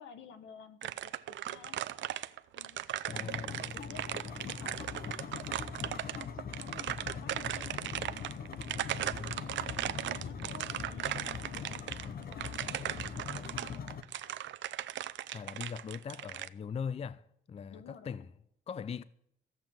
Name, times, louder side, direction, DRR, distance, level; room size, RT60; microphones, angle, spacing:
voice 1, 0.0-1.8 2.5-6.3 6.5-6.7 7.0-8.2 8.7-14.4 17.7-18.2, left 7 dB, 80° left, 1.5 m, -54 dB
sound 1, 0.8-16.5, right 13 dB, 70° right, 0.6 m, -38 dB
sound 2, 3.1-14.0, left 6 dB, 50° left, 1.0 m, -42 dB
voice 2, 3.1-3.6 9.0-9.4 15.3-18.3 18.7-19.0, left 6 dB, 30° left, 0.4 m, -40 dB
14.0 x 7.9 x 8.9 m
cardioid pair, 90°, 20 cm